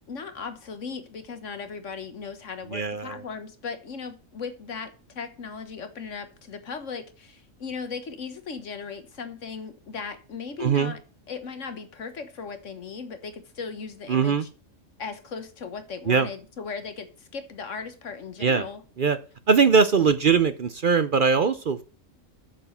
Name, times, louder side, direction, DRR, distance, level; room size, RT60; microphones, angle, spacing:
voice 1, 0.1-11.0 11.3-14.5 15.0-18.8, left 5 dB, 70° left, 1.6 m, -37 dB
voice 2, 2.7-3.2 10.6-10.9 14.1-14.4 16.1-16.3 18.4-18.6 19.0-19.2 19.5-21.8, right 5 dB, 50° right, 0.7 m, -21 dB
7.6 x 7.1 x 5.6 m
omnidirectional pair, 1.3 m